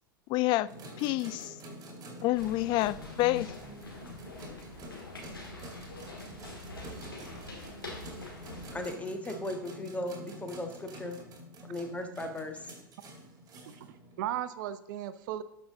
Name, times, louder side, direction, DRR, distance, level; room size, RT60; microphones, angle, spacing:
voice 1, 0.3-0.7 1.0-1.5 2.2-3.5, left 17 dB, 40° left, 0.4 m, -28 dB
sound 1, 0.7-14.5, equal, 35° right, 2.3 m, -47 dB
sound 2, 2.3-8.8, left 2 dB, 85° left, 2.3 m, -45 dB
voice 2, 8.7-11.2 11.6-12.6, left 1 dB, 10° left, 1.5 m, -37 dB
voice 3, 13.6-15.4, right 12 dB, 60° right, 0.7 m, -36 dB
12.5 x 5.7 x 3.8 m
figure-of-eight pair, 85°, 12 cm